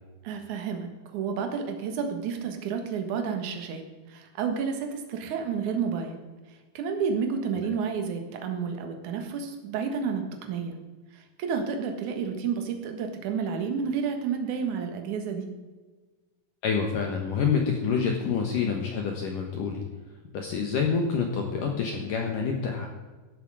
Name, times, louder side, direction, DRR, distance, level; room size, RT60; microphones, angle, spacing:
voice 1, 0.2-3.8 4.1-6.2 6.7-10.8 11.1-15.5, right 6 dB, 65° right, 4 dB, 2.0 m, -30 dB
voice 2, 16.6-19.8 20.3-22.9, left 6 dB, 80° left, 2 dB, 1.9 m, -27 dB
15.0 x 11.0 x 4.9 m, 1.3 s
omnidirectional pair, 5.7 m